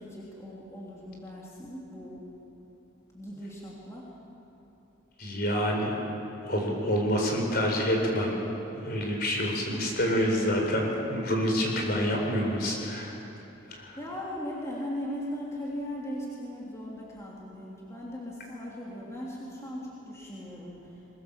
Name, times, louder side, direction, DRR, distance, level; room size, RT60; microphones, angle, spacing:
voice 1, 0.0-2.3 3.1-4.1 9.3-9.9 13.9-21.0, equal, 15° left, -5 dB, 3.3 m, -38 dB
voice 2, 5.2-5.9 6.4-8.4 8.8-13.1 13.7-14.0, equal, 50° left, 0 dB, 4.6 m, -27 dB
23.0 x 22.5 x 7.3 m, 2.9 s
head